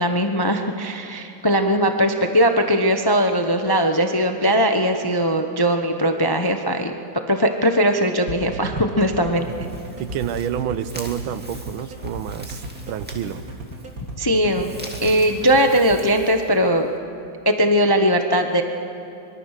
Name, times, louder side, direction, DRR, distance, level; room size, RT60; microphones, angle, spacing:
voice 1, 0.0-6.9 7.3-9.5 14.2-14.7 15.0-16.9 17.4-18.6, equal, 30° left, 5 dB, 0.4 m, -19 dB
sound 1, 8.3-16.0, right 1 dB, 45° right, 2.4 m, -34 dB
sound 2, 9.3-17.0, equal, 5° right, 2.0 m, -43 dB
voice 2, 10.0-12.6 12.9-13.4, right 10 dB, 90° right, 13 dB, 1.6 m, -29 dB
23.5 x 23.0 x 6.6 m, 2.8 s
omnidirectional pair, 2.2 m